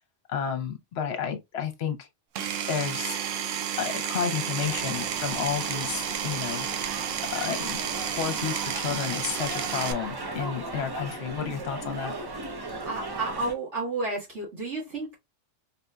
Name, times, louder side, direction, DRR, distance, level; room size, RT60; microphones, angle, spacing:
voice 1, 0.3-2.1 2.7-3.2 3.7-6.7 7.3-7.8 8.2-12.1, left 7 dB, 60° left, 1.0 m, -31 dB
Power tool, 2.3-9.9, right 8 dB, 85° right, 1.0 m, -31 dB
sound 1, 4.6-13.5, right 2 dB, 40° right, 0.3 m, -37 dB
voice 2, 12.8-15.2, right 3 dB, 70° right, 2.1 m, -31 dB
4.2 x 2.6 x 2.2 m
omnidirectional pair, 1.3 m